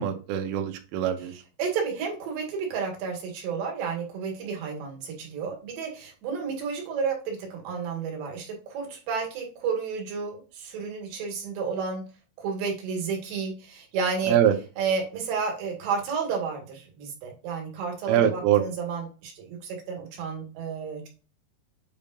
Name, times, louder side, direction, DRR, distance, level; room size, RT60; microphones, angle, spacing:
voice 1, 0.0-1.3 14.3-14.5 18.1-18.6, right 10 dB, 90° right, 6 dB, 3.3 m, -23 dB
voice 2, 1.6-12.0 12.4-14.3 14.8-21.1, right 5 dB, 65° right, 1 dB, 3.9 m, -31 dB
8.8 x 5.2 x 2.5 m, 0.35 s
omnidirectional pair, 5.6 m